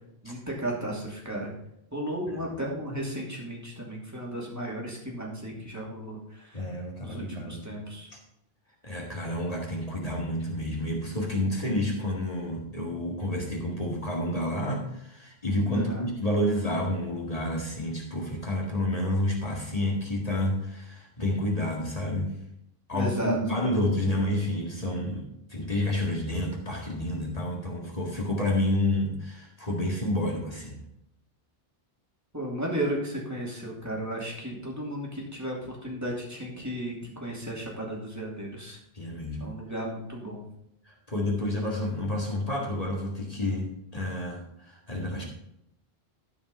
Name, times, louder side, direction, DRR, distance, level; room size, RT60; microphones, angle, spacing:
voice 1, 0.2-1.5 1.9-6.6 7.0-8.1 15.7-16.0 22.9-23.4 32.3-38.8 39.4-40.4, right 1 dB, 15° right, -3 dB, 2.8 m, -34 dB
voice 2, 6.5-7.6 8.1-8.2 8.8-22.3 22.9-30.8 38.9-39.5 40.9-45.2, left 1 dB, 40° left, -2 dB, 2.0 m, -29 dB
13.0 x 5.2 x 5.4 m, 0.80 s
omnidirectional pair, 1.0 m